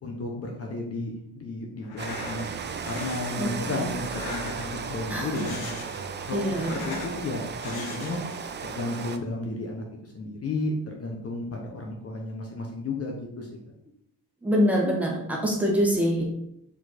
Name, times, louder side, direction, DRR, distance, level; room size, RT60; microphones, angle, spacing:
voice 1, 0.0-2.5 2.8-5.8 6.3-8.2 8.6-13.5, left 2 dB, 35° left, 1 dB, 1.1 m, -33 dB
sound 1, 1.8-2.4 2.8-3.3 4.0-4.8 5.2-6.1 6.4-7.2 7.6-8.4, left 3 dB, 65° left, 1.5 m, -40 dB
Rain, 2.0-9.2, right 5 dB, 25° right, 0.5 m, -35 dB
voice 2, 3.3-3.9 5.1-5.4 6.3-6.7 14.4-16.2, equal, 5° right, -3 dB, 1.5 m, -25 dB
7.4 x 4.6 x 4.3 m, 0.75 s
cardioid pair, 165°, 40 cm